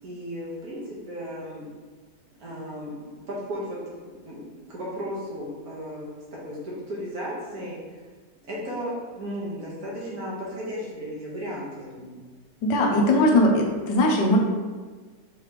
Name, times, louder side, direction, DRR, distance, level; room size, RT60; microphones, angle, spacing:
voice 1, 0.0-1.7 2.4-3.8 4.2-6.1 6.4-7.8 8.4-12.2, equal, 60° right, -6 dB, 1.6 m, -35 dB
voice 2, 12.6-14.4, left 1 dB, 85° left, 0 dB, 1.4 m, -20 dB
4.7 x 3.3 x 2.9 m, 1.4 s
omnidirectional pair, 1.9 m